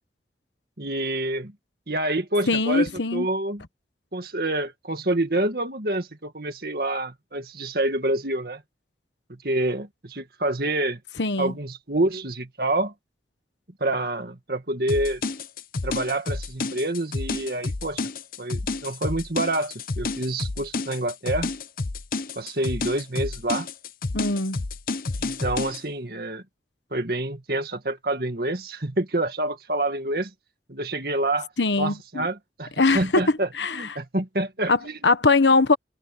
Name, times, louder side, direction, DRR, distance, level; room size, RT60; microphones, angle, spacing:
voice 1, 0.8-1.5 1.9-3.6 4.1-8.6 9.4-11.0 11.4-12.9 13.8-15.2 15.8-18.0 18.4-21.5 22.4-23.7 25.2-26.4 26.9-30.3 30.7-31.5 31.8-35.0, right 1 dB, 55° right, 2.0 m, -27 dB
voice 2, 2.5-3.3 11.2-11.5 24.1-24.6 31.6-32.3 32.8-34.0 34.7-35.8, left 3 dB, 90° left, 1.2 m, -22 dB
sound 1, 14.9-25.8, left 3 dB, 55° left, 0.8 m, -30 dB
head